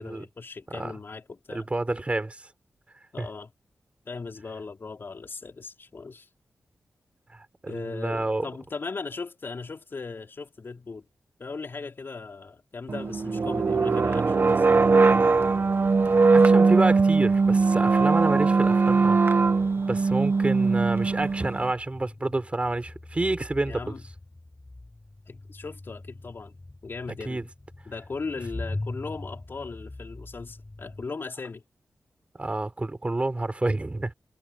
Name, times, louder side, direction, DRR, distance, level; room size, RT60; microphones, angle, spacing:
voice 1, 0.0-1.7 3.1-3.5 4.1-6.3 7.7-11.0 11.4-14.6 23.7-24.0 25.3-26.6 26.8-27.5 27.8-31.6, left 4 dB, 50° left, 4.5 m, -38 dB
voice 2, 1.5-2.5 3.2-3.3 7.6-8.5 16.0-19.2 19.9-23.9 27.3-27.4 32.4-34.1, right 2 dB, 25° right, 4.6 m, -28 dB
sound 1, 12.9-21.7, right 4 dB, 50° right, 1.5 m, -21 dB
sound 2, 20.4-20.5 21.5-31.1, left 2 dB, 25° left, 4.4 m, -41 dB
cardioid pair, 65°, 5 cm